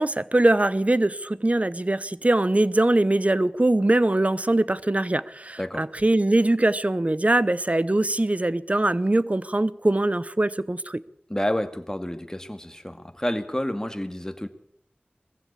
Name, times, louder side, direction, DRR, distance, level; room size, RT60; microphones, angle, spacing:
voice 1, 0.0-11.0, right 2 dB, 40° right, 0.9 m, -22 dB
voice 2, 11.3-14.5, left 1 dB, 15° left, 2.1 m, -29 dB
21.0 x 15.0 x 8.5 m
wide cardioid pair, 50°, 4 cm